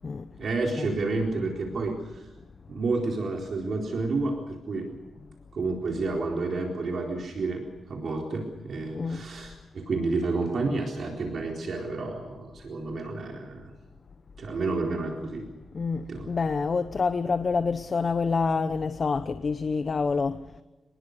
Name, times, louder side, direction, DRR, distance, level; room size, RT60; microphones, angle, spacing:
voice 1, 0.4-2.3 2.7-4.9 5.5-13.7 14.4-15.5 16.1-16.3, right 3 dB, 55° right, 4.1 m, -30 dB
voice 2, 8.9-9.3 15.7-20.4, left 4 dB, 40° left, 0.8 m, -27 dB
26.5 x 20.5 x 6.7 m
wide cardioid pair, 150°, 0 cm